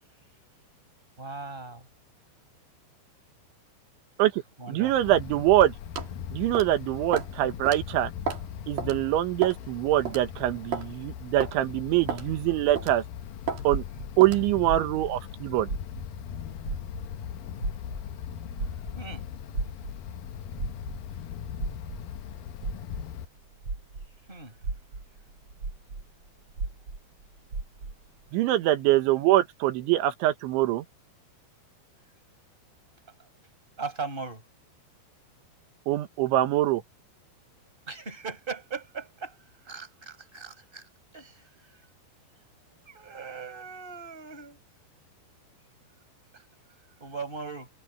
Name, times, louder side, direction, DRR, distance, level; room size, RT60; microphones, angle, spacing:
voice 1, 1.2-1.9 4.6-4.9 18.9-19.2 24.3-24.6 33.2-33.3 33.8-34.4 37.9-39.4 39.6-41.8 42.9-44.6 46.3-46.5 47.0-47.7, right 4 dB, 10° right, 5.4 m, -39 dB
voice 2, 4.7-5.7 6.3-8.1 8.7-13.0 13.7-13.8 14.2-15.7 28.3-30.9 35.9-36.8, right 14 dB, 80° right, 3.8 m, -24 dB
Wind, 4.8-23.2, left 9 dB, 75° left, 2.1 m, -39 dB
sound 1, 6.0-6.1 6.5-6.8 7.1-7.3 7.7-7.8 8.3-8.5 8.8-8.9 9.4-9.7 10.1-10.2 10.7-10.9 11.4-11.6 12.1-12.3 12.8-13.0 13.5-13.6 14.2-14.4, right 7 dB, 55° right, 4.2 m, -32 dB
sound 2, 13.7-16.3 16.6-24.2 24.6-28.1, right 3 dB, 30° right, 4.8 m, -36 dB
omnidirectional pair, 5.4 m